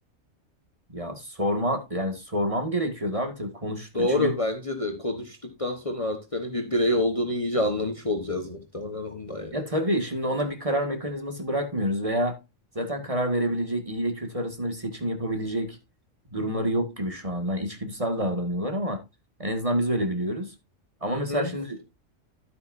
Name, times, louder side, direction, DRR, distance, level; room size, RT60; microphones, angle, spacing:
voice 1, 0.9-4.3 9.5-12.4 12.8-15.8 16.3-19.0 19.4-20.5 21.0-21.9, equal, 25° right, 2.0 m, -28 dB
voice 2, 3.9-9.6 21.1-21.5, left 1 dB, 25° left, 1.3 m, -27 dB
12.5 x 8.6 x 2.6 m
omnidirectional pair, 1.3 m